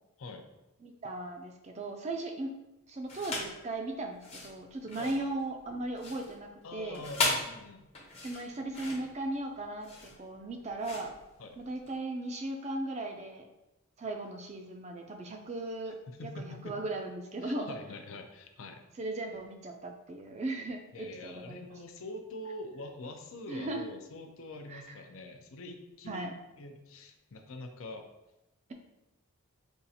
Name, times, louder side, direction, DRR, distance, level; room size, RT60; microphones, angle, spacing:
voice 1, 0.8-2.5 2.9-7.0 8.2-11.2 11.6-13.5 14.0-16.0 16.2-17.8 19.0-21.6 23.5-23.8 24.7-25.0 26.1-26.3, right 2 dB, 30° right, 4 dB, 0.4 m, -37 dB
sound 1, 3.1-3.6 4.1-12.0, left 3 dB, 30° left, 0.6 m, -37 dB
voice 2, 5.0-5.3 6.6-7.9 11.4-11.6 15.9-16.8 17.4-18.8 20.9-26.3 26.6-28.1, left 2 dB, 65° left, 5 dB, 0.5 m, -44 dB
5.3 x 2.4 x 2.7 m, 0.96 s
head